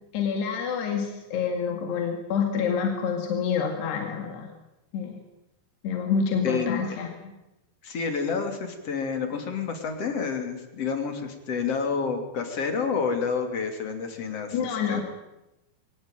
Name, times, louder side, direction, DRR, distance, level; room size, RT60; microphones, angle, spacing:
voice 1, 0.1-4.5 4.9-5.2 5.8-7.3 14.5-15.0, left 6 dB, 80° left, 3 dB, 4.3 m, -27 dB
voice 2, 6.4-7.0 7.8-15.0, left 5 dB, 40° left, 5 dB, 3.4 m, -29 dB
22.5 x 18.5 x 9.0 m, 0.94 s
omnidirectional pair, 4.7 m